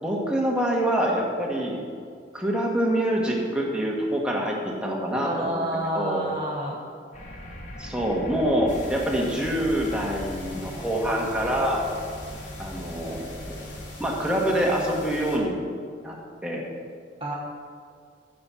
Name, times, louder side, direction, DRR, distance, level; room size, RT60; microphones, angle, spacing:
voice 1, 0.0-1.8 2.3-5.6 5.9-6.2 7.8-11.9 12.6-13.4 14.0-15.6 16.0-16.2 16.4-16.7, right 1 dB, 5° right, -3 dB, 1.6 m, -25 dB
voice 2, 5.2-6.8 17.2-17.3, right 1 dB, 30° right, -2 dB, 1.1 m, -29 dB
sound 1, 7.1-13.9, equal, 40° left, 1.6 m, -41 dB
sound 2, 8.7-15.4, left 1 dB, 70° left, 2.9 m, -41 dB
14.0 x 6.8 x 5.8 m, 2.2 s
head